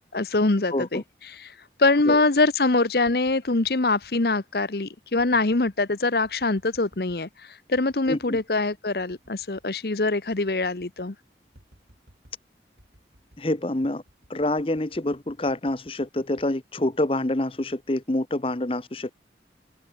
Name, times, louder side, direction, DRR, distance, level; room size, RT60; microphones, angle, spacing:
voice 1, 0.1-1.0 1.3-1.5 1.8-7.3 7.7-11.1, left 3 dB, 60° left, 1.0 m, -23 dB
voice 2, 0.7-1.0 2.1-2.2 8.1-8.4 13.4-14.0 14.3-19.1, left 1 dB, 30° left, 0.9 m, -27 dB
sound 1, 3.0-4.2 5.2-5.8 6.2-7.3 7.7-8.5 9.0-9.7 10.0-10.1 10.3-11.1 11.5-12.5 12.8-13.5 14.1-17.2 17.6-18.0, equal, 80° right, 7.6 m, -58 dB
open air
head